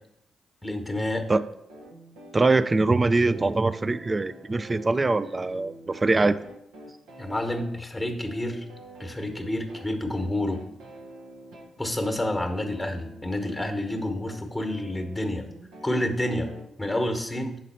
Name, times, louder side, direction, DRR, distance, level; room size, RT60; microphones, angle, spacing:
voice 1, 0.6-1.3 7.2-8.6 9.0-10.6 11.8-15.5 15.8-16.5 16.8-17.6, left 1 dB, 10° left, 5 dB, 1.1 m, -29 dB
sound 1, 1.7-16.7, right 1 dB, 80° right, 0.8 m, -47 dB
voice 2, 2.3-6.4, right 3 dB, 30° right, 15 dB, 0.3 m, -23 dB
6.3 x 3.9 x 4.2 m, 0.80 s
hypercardioid pair, 45°, 0 cm